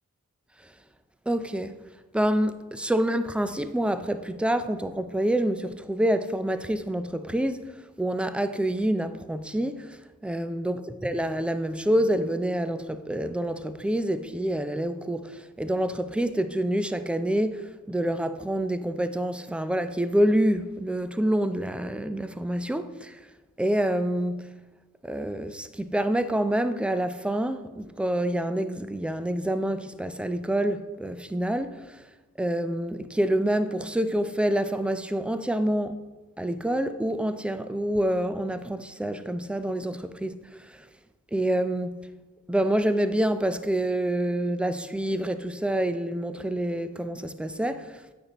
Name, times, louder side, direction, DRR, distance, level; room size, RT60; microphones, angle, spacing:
voice 1, 1.3-1.8 2.1-7.7 8.0-23.2 23.6-24.5 25.0-32.0 32.4-36.0 36.4-40.9 41.3-42.0 42.5-48.0, right 1 dB, 5° right, 0.5 m, -27 dB
8.7 x 5.2 x 3.0 m
cardioid pair, 45°, 33 cm